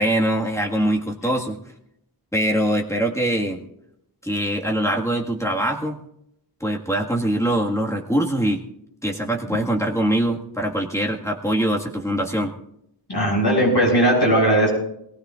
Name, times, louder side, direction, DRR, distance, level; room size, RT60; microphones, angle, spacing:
voice 1, 0.0-1.6 2.3-3.6 4.2-6.0 6.6-8.6 9.0-12.5, right 1 dB, 5° left, -1 dB, 1.8 m, -23 dB
voice 2, 13.1-14.7, right 1 dB, 60° left, -2 dB, 7.7 m, -18 dB
22.5 x 17.0 x 2.5 m, 0.77 s
wide cardioid pair, 40°, 44 cm